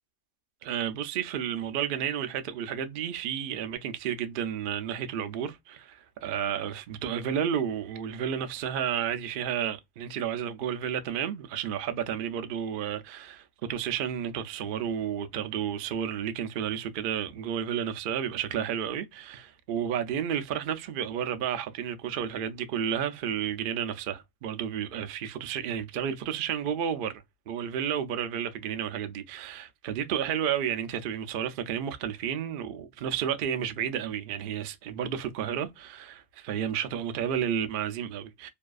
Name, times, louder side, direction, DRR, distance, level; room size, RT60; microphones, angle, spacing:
voice 1, 0.6-38.5, right 9 dB, 80° right, 0.4 m, -31 dB
2.6 x 2.3 x 2.3 m
omnidirectional pair, 1.5 m